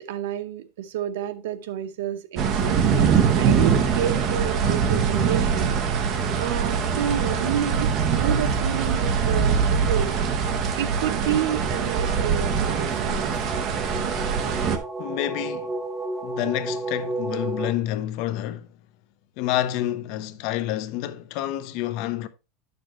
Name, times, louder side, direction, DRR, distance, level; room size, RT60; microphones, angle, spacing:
voice 1, 0.0-2.8 3.4-5.8 6.4-10.2 10.8-13.3, right 11 dB, 80° right, 1.0 m, -29 dB
sound 1, 2.4-14.8, right 6 dB, 30° right, 0.9 m, -23 dB
sound 2, 11.5-17.7, right 2 dB, 5° right, 0.5 m, -33 dB
voice 2, 15.0-15.7 16.2-18.7 19.4-22.3, left 13 dB, 45° left, 0.6 m, -28 dB
10.5 x 6.7 x 3.0 m
supercardioid pair, 175°, 0 cm